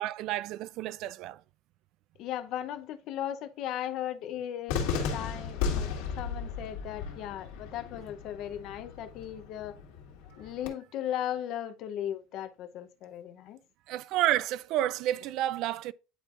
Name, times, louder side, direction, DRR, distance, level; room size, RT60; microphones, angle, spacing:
voice 1, 0.0-1.4 13.9-15.9, right 13 dB, 50° right, 0.4 m, -30 dB
voice 2, 2.2-5.9 6.2-9.8 10.4-13.6, left 11 dB, 45° left, 0.7 m, -37 dB
Cheering / Fireworks, 4.7-10.7, left 6 dB, 80° left, 2.1 m, -35 dB
10.0 x 4.5 x 2.5 m
cardioid pair, 160°, 0 cm